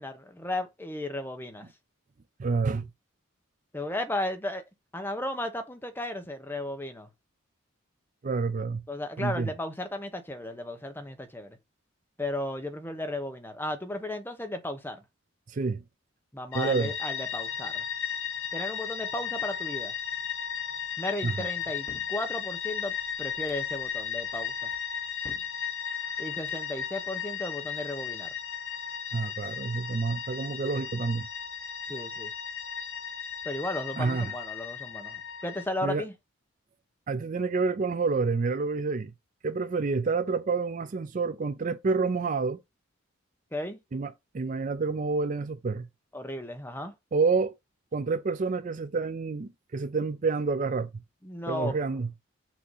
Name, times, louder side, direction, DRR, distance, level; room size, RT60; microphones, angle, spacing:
voice 1, 0.0-1.7 3.7-4.6 4.9-7.1 8.9-11.6 12.2-15.0 16.3-17.9 18.5-19.9 21.0-24.7 26.2-28.3 31.9-32.3 33.4-36.1 43.5-43.8 46.1-46.9 51.2-51.7, left 1 dB, 10° left, 0.9 m, -35 dB
voice 2, 2.4-2.9 8.2-8.8 9.2-9.5 15.5-15.8 16.5-16.9 21.2-21.5 29.1-31.3 34.0-34.3 35.8-36.0 37.1-39.1 39.4-42.6 43.9-45.9 47.1-47.5 47.9-50.9 51.5-52.1, right 4 dB, 40° right, 0.4 m, -28 dB
sound 1, 16.5-35.7, left 8 dB, 85° left, 1.2 m, -35 dB
sound 2, 21.6-22.2 23.3-23.7 24.7-25.6 26.3-26.7, left 2 dB, 30° left, 0.5 m, -50 dB
6.2 x 2.8 x 5.5 m
head